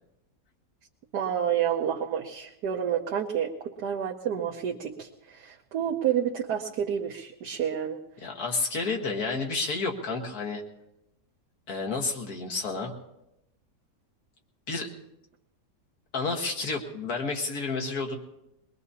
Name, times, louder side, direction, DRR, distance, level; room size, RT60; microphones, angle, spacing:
voice 1, 1.1-8.0, right 9 dB, 70° right, -1 dB, 1.4 m, -29 dB
voice 2, 8.2-10.6 11.7-12.9 14.7-14.9 16.1-18.2, left 3 dB, 60° left, 1 dB, 1.9 m, -30 dB
22.0 x 20.5 x 2.8 m, 0.88 s
omnidirectional pair, 1.8 m